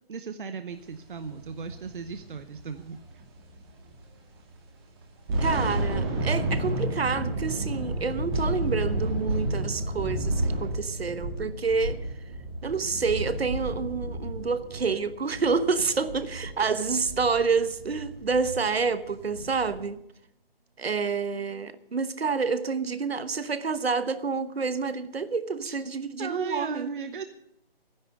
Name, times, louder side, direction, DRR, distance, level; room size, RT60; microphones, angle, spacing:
voice 1, 0.1-3.0 15.8-15.9 25.6-25.8 26.2-27.2, right 5 dB, 55° right, 0.9 m, -37 dB
sound 1, 1.2-4.1 4.4-4.5 5.0-19.8, right 1 dB, 25° right, 2.3 m, -31 dB
voice 2, 5.4-12.0 12.6-20.0 20.8-26.9, right 4 dB, 80° right, 1.1 m, -28 dB
12.5 x 10.5 x 7.9 m
figure-of-eight pair, 160°, 30 cm